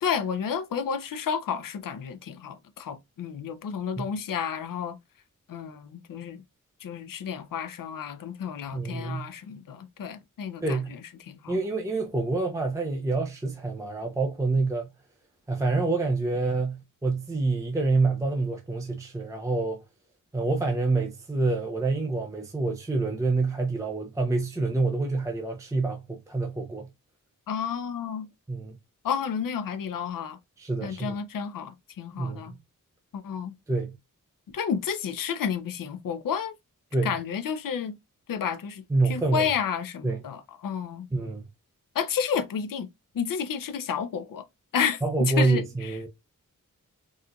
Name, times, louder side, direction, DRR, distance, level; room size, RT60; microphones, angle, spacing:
voice 1, 0.0-5.0 5.5-6.4 6.8-10.8 11.3-11.5 27.5-28.3 29.0-30.4 30.8-32.5 33.1-33.5 34.5-36.5 37.0-38.0 38.3-41.1 41.9-42.9 43.1-44.4 44.7-46.0, left 7 dB, 80° left, 0.5 m, -31 dB
voice 2, 8.7-9.3 10.6-10.9 11.5-14.9 15.5-19.8 20.3-26.9 28.5-28.8 30.6-31.2 32.2-32.6 33.7-34.0 36.9-37.2 38.9-39.5 40.0-40.2 41.1-41.5 45.0-46.1, right 3 dB, 10° right, 0.5 m, -27 dB
4.2 x 2.4 x 2.2 m
wide cardioid pair, 140°, 33 cm